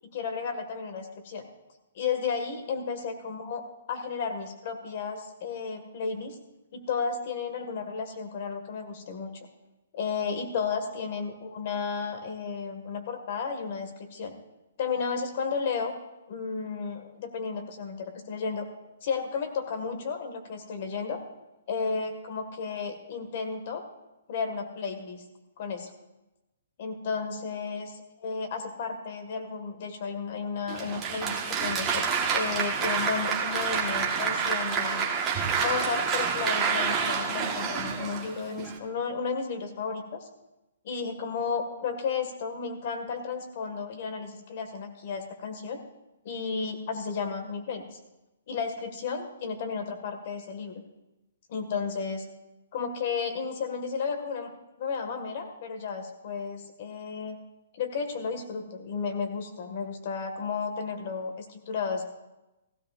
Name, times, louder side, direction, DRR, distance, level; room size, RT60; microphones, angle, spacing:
voice 1, 0.1-1.5 2.0-6.4 6.7-9.3 9.9-14.3 14.8-15.9 16.3-18.7 19.0-21.2 21.7-23.8 24.3-25.2 25.6-25.9 26.8-32.0 32.3-35.1 35.6-40.3 40.8-45.8 46.3-48.0 48.5-50.8 51.5-52.3 52.7-54.5 54.8-57.4 57.7-62.0, left 5 dB, 45° left, 5 dB, 1.7 m, -33 dB
Applause, 30.7-38.8, right 6 dB, 15° right, 1.3 m, -28 dB
16.0 x 15.5 x 2.5 m, 0.98 s
hypercardioid pair, 165°, 0 cm